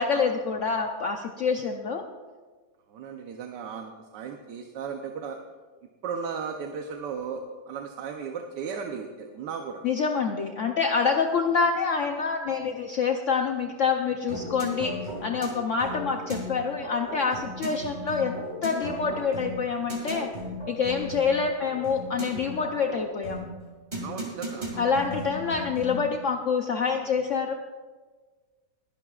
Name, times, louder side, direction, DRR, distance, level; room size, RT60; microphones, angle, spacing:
voice 1, 0.0-2.0 9.8-14.9 15.2-20.3 20.7-23.5 24.8-27.5, left 5 dB, 60° left, 4 dB, 0.9 m, -26 dB
voice 2, 2.9-5.4 6.0-9.8 24.0-24.9, right 6 dB, 85° right, 4 dB, 1.4 m, -36 dB
sound 1, 14.3-26.1, equal, 25° right, 2.3 m, -36 dB
21.0 x 10.5 x 2.4 m, 1.4 s
omnidirectional pair, 1.8 m